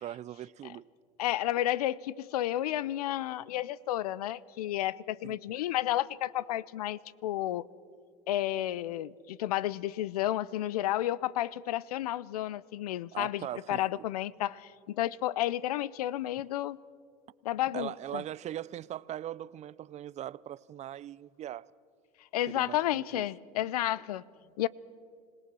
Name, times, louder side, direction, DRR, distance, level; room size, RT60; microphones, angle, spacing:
voice 1, 0.0-0.9 5.2-5.4 13.1-14.0 17.7-21.7 22.5-23.3, right 12 dB, 35° right, 0.5 m, -40 dB
voice 2, 1.2-7.7 8.3-16.8 17.4-18.2 22.3-24.2 24.6-24.7, left 14 dB, 90° left, 0.5 m, -31 dB
26.0 x 18.0 x 6.1 m
supercardioid pair, 95°, 19 cm